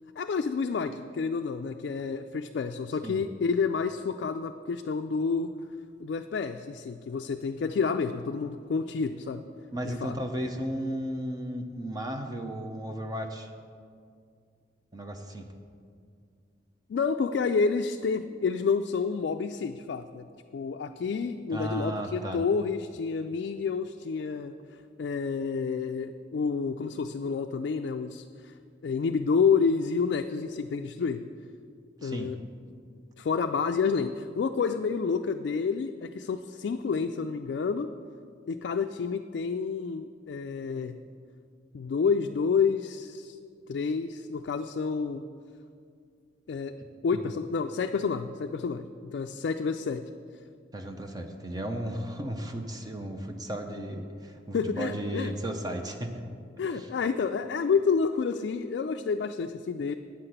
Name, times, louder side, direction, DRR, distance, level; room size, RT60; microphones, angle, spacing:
voice 1, 0.2-5.5 6.0-9.4 9.8-10.2 16.9-20.3 20.5-24.5 25.0-28.5 28.8-31.2 32.0-32.4 33.2-37.9 38.5-41.0 41.7-43.4 43.7-45.2 46.5-46.7 47.0-48.9 49.1-50.1 54.5-55.3 56.6-59.9, left 5 dB, 65° left, 5 dB, 0.3 m, -29 dB
voice 2, 9.7-13.5 14.9-15.5 21.5-22.4 32.0-32.4 50.7-56.2 56.7-56.9, right 1 dB, 20° right, 4 dB, 0.6 m, -34 dB
8.5 x 5.8 x 7.9 m, 2.2 s
head